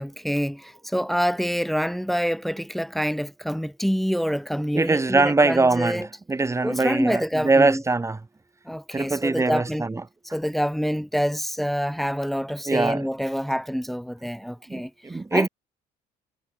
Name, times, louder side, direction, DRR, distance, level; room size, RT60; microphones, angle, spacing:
voice 1, 0.0-6.1 6.6-7.8 8.7-9.9 10.3-14.9 15.3-15.5, equal, ahead, 2.4 m, -26 dB
voice 2, 4.7-8.2 8.9-10.0 12.7-13.1 14.7-15.5, right 3 dB, 15° right, 4.5 m, -22 dB
cardioid pair, 110°, 17 cm